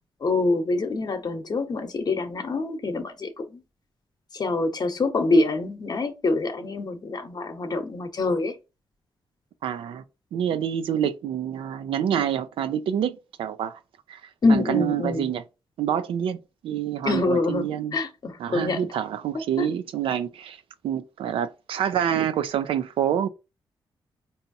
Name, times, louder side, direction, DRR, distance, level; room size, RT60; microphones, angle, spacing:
voice 1, 0.2-3.6 4.3-8.5 14.4-15.3 17.0-18.8 19.6-19.7, left 3 dB, 50° left, 0.9 m, -25 dB
voice 2, 9.6-10.0 10.3-13.8 14.1-14.2 14.5-15.4 15.8-18.0 18.4-23.3, right 9 dB, 85° right, 0.4 m, -27 dB
4.4 x 2.7 x 2.7 m
cardioid pair, 70°, 9 cm